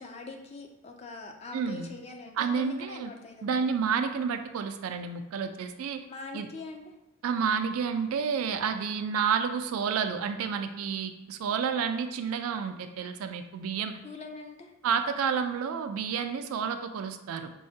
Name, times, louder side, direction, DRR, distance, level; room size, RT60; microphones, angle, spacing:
voice 1, 0.0-4.0 6.1-6.9 14.0-14.7, left 3 dB, 30° left, 3 dB, 0.3 m, -43 dB
voice 2, 1.5-1.9 2.4-3.1 3.4-6.0 6.3-6.5 7.2-14.0 14.8-17.5, right 6 dB, 85° right, 8 dB, 0.3 m, -30 dB
5.4 x 2.1 x 2.7 m, 1.0 s
head